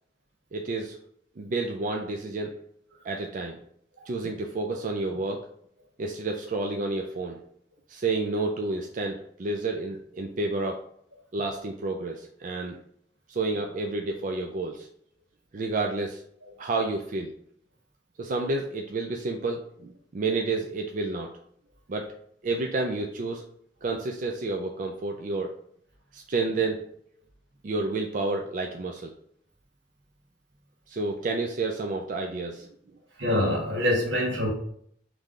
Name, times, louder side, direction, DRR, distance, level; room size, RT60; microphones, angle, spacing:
voice 1, 0.5-1.0 1.4-2.5 3.0-3.6 4.1-5.5 6.0-7.4 7.9-10.8 11.3-12.8 13.3-14.9 15.5-16.2 16.6-17.3 18.2-21.3 21.9-22.1 22.4-23.4 23.8-25.6 26.1-26.8 27.6-29.1 30.9-32.7, right 3 dB, 45° right, 2 dB, 0.4 m, -30 dB
voice 2, 33.2-34.5, left 1 dB, 80° right, -2 dB, 1.3 m, -25 dB
3.6 x 3.2 x 3.7 m, 0.67 s
head